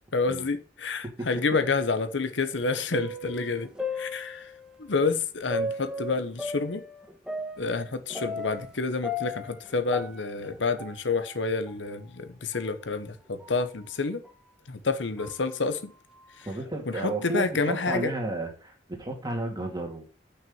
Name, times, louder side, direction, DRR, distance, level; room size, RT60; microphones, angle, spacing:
voice 1, 0.1-3.7 4.0-4.5 4.8-6.8 7.6-14.2 14.7-15.9 16.9-18.1, left 4 dB, 75° left, 0.9 m, -29 dB
sound 1, 2.6-4.8 5.5-8.8 9.0-11.4 11.7-11.8 12.5-12.6 13.4-13.6 14.2-14.3 15.2-15.5, left 1 dB, 5° right, 1.1 m, -36 dB
voice 2, 16.5-20.0, right 2 dB, 20° right, 2.4 m, -32 dB
6.2 x 5.9 x 7.1 m
head